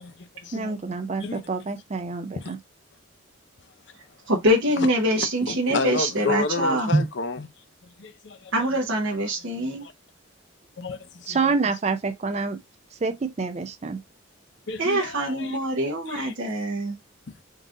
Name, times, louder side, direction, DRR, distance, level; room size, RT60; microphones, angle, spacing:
voice 1, 0.0-0.7 1.2-1.4 2.4-2.5 4.8-4.9 5.5-7.5 8.0-8.5 9.5-9.9 10.8-11.5 14.7-15.6 15.8-16.3, left 4 dB, 55° left, 0.6 m, -31 dB
voice 2, 0.5-2.6 6.9-7.0 11.3-12.6 13.0-14.0, right 3 dB, 30° right, 0.4 m, -26 dB
voice 3, 4.3-6.9 8.5-9.9 14.8-17.0, equal, 65° right, 0.9 m, -24 dB
3.9 x 2.6 x 3.6 m
head